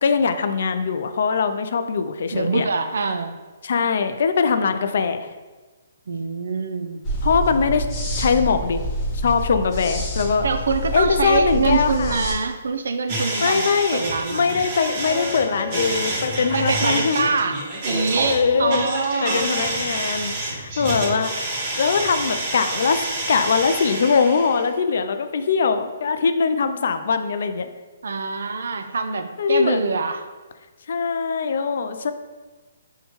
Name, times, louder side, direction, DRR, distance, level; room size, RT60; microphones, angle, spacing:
voice 1, 0.0-2.7 3.6-5.3 7.2-7.9 8.2-8.8 9.2-10.5 10.9-12.2 13.4-14.0 14.3-17.3 18.2-18.9 19.2-23.0 23.3-27.7 29.4-29.8 30.9-32.1, left 5 dB, 65° left, 9 dB, 0.3 m, -21 dB
voice 2, 2.3-3.4 6.1-7.0 10.4-13.7 13.9-14.6 16.5-19.5 28.0-30.3, right 4 dB, 75° right, 8 dB, 0.3 m, -24 dB
sound 1, 7.0-12.3, right 1 dB, 25° left, 0.7 m, -27 dB
sound 2, 13.1-24.7, right 2 dB, 35° right, 1.1 m, -28 dB
5.4 x 2.2 x 2.9 m, 1.3 s
hypercardioid pair, 150°, 0 cm